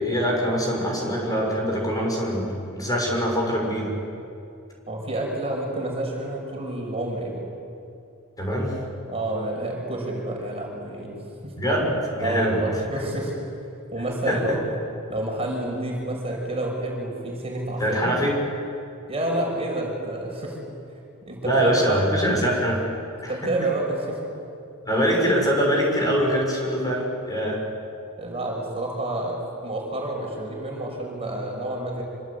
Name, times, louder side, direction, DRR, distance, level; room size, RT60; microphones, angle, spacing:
voice 1, 0.0-3.9 8.4-8.7 11.6-12.6 14.3-14.4 17.8-18.4 21.4-22.8 23.2-23.4 24.8-27.6, equal, 15° left, -2 dB, 7.1 m, -23 dB
voice 2, 4.9-7.5 9.1-11.2 11.4-11.5 12.2-13.3 13.9-14.6 15.1-18.1 19.1-20.6 21.2-22.0 23.3-24.2 28.2-32.0, right 1 dB, 30° right, -1 dB, 6.1 m, -29 dB
27.0 x 26.0 x 8.5 m, 2.6 s
head